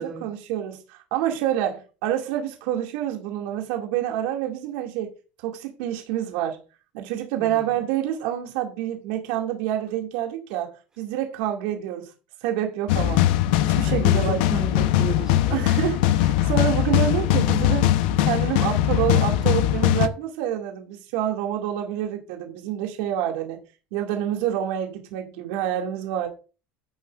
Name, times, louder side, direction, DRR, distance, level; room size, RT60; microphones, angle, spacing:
voice 1, 0.2-5.1 5.4-6.6 6.9-12.1 12.4-13.2 13.6-14.5 15.5-17.9 18.2-23.6 23.9-26.3, right 11 dB, 75° right, 2.2 m, -27 dB
voice 2, 7.4-7.7 13.8-15.7, right 4 dB, 15° right, 2.2 m, -34 dB
sound 1, 12.9-20.1, left 12 dB, 85° left, 0.8 m, -20 dB
11.0 x 9.4 x 2.5 m
cardioid pair, 175°, 5 cm